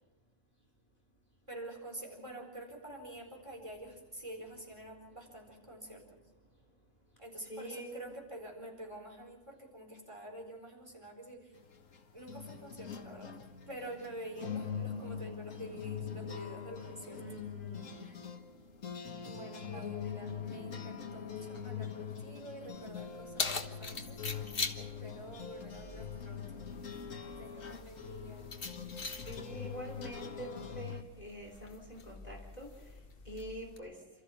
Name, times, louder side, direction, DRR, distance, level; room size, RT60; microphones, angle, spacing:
voice 1, 1.5-6.0 7.2-11.6 12.1-13.4 13.7-17.4 18.0-18.2 19.2-24.2 24.8-26.7 27.2-28.5, right 1 dB, 25° right, 0 dB, 4.6 m, -47 dB
voice 2, 7.5-8.1 17.2-18.1 19.7-19.8 29.2-32.7 33.2-34.0, right 1 dB, 30° left, 1 dB, 3.1 m, -45 dB
sound 1, 11.6-31.0, left 7 dB, 80° left, 1.8 m, -43 dB
Keys jangling, 22.7-33.8, left 4 dB, 45° left, 1.6 m, -43 dB
28.5 x 14.0 x 7.1 m, 1.2 s
omnidirectional pair, 1.3 m